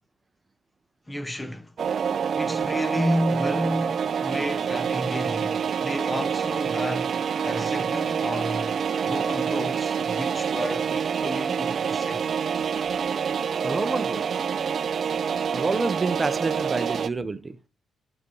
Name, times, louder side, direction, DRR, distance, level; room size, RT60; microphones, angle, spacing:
voice 1, 1.1-1.7 2.3-8.8 9.1-12.3, equal, 10° left, 1.0 m, -31 dB
sound 1, 1.8-17.1, right 7 dB, 45° right, 0.6 m, -27 dB
voice 2, 13.6-14.4 15.5-17.5, right 3 dB, 20° right, 0.9 m, -28 dB
13.0 x 8.3 x 5.5 m
cardioid pair, 140°, 0 cm